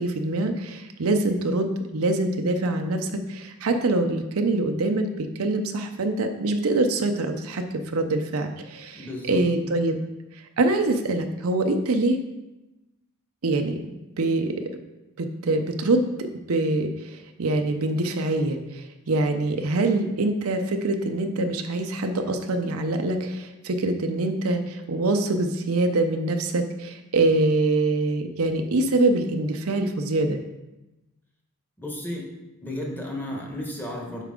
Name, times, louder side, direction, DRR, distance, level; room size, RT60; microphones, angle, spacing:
voice 1, 0.0-10.0 10.6-12.2 13.4-13.8 14.2-14.5 15.2-30.4, right 2 dB, 75° right, 5 dB, 0.6 m, -24 dB
voice 2, 8.9-9.4 31.8-32.3 32.6-34.2, left 1 dB, 10° left, -1 dB, 1.1 m, -33 dB
8.3 x 4.6 x 3.7 m, 1.0 s
head